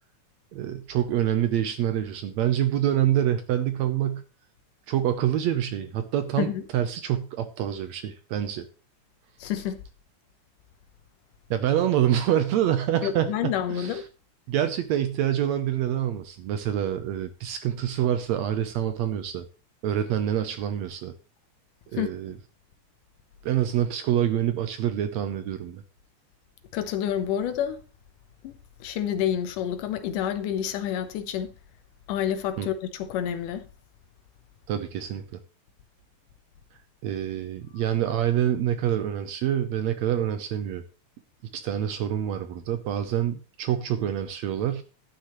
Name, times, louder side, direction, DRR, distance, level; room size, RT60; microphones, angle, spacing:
voice 1, 0.5-4.2 4.9-8.7 11.5-14.0 14.5-19.5 19.8-21.2 21.9-22.3 23.4-25.8 32.6-32.7 34.7-35.2 37.0-40.8 41.5-44.8, right 10 dB, 70° right, 1.8 m, -26 dB
voice 2, 9.4-9.8 13.0-14.1 21.9-22.1 26.7-27.8 28.4-31.5 32.1-33.7, left 10 dB, 80° left, 2.5 m, -29 dB
11.5 x 9.3 x 3.1 m
omnidirectional pair, 3.7 m